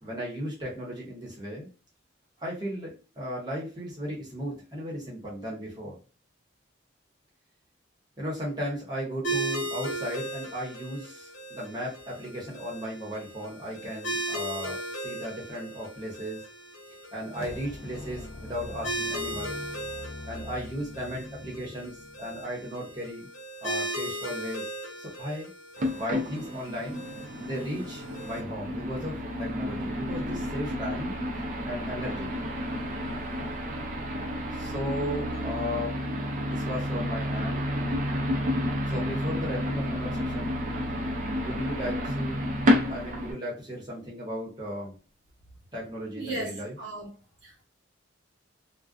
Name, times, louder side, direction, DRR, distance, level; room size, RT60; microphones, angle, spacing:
voice 1, 0.0-1.7 2.4-6.0 8.2-16.4 17.1-19.6 20.3-23.3 23.6-24.7 25.0-25.5 25.9-27.0 27.4-31.1 31.7-32.4 34.5-36.0 36.4-37.7 38.9-40.5 41.3-42.4 42.9-44.9 45.7-46.7, equal, 20° right, 1.0 m, -36 dB
sound 1, 9.2-28.4, right 1 dB, 75° left, 0.8 m, -37 dB
sound 2, 17.3-22.7, left 2 dB, 30° left, 0.3 m, -43 dB
sound 3, 25.8-43.3, equal, 40° right, 0.5 m, -30 dB
voice 2, 46.1-47.1 47.4-47.6, right 2 dB, 65° right, 1.0 m, -36 dB
2.4 x 2.2 x 2.3 m
head